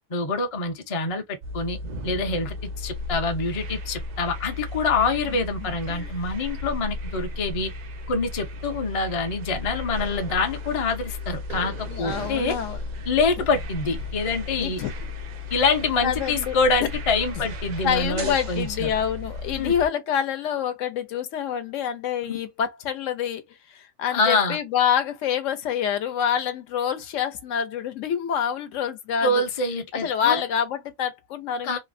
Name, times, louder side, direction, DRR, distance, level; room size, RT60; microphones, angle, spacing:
voice 1, 0.1-1.8 2.0-7.7 8.1-12.6 13.1-14.8 15.5-18.9 19.6-19.7 24.1-24.6 29.2-30.4 31.6-31.8, left 3 dB, 40° left, 0.5 m, -25 dB
sound 1, 1.4-19.9, left 2 dB, 90° right, 0.3 m, -35 dB
voice 2, 11.9-12.8 14.6-14.9 16.0-16.6 17.8-23.4 23.7-29.4 30.0-31.8, left 8 dB, 75° left, 0.9 m, -27 dB
3.0 x 2.0 x 2.5 m
omnidirectional pair, 1.3 m